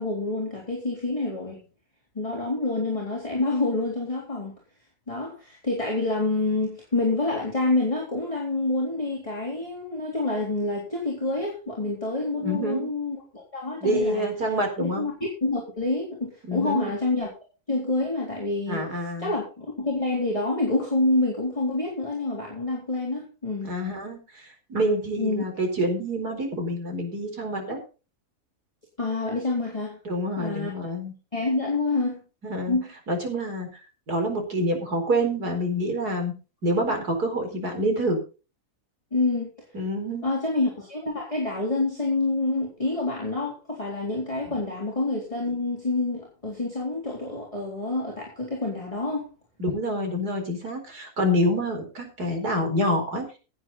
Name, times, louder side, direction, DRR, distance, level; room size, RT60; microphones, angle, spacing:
voice 1, 0.0-1.6 2.1-4.6 5.1-14.3 14.8-15.1 15.4-17.3 17.7-18.9 19.2-23.7 25.2-25.5 29.0-30.0 30.4-30.7 31.3-32.2 32.7-32.9 39.1-39.5 40.2-49.3, left 2 dB, 20° left, -3 dB, 3.8 m, -27 dB
voice 2, 12.4-12.9 13.8-15.1 16.5-16.9 18.7-19.3 23.6-27.8 30.0-31.1 32.4-32.8 33.1-33.7 34.1-36.3 36.6-38.2 39.7-40.2 49.6-53.3, equal, 85° right, 4 dB, 5.0 m, -27 dB
18.0 x 8.3 x 4.1 m, 0.33 s
omnidirectional pair, 1.6 m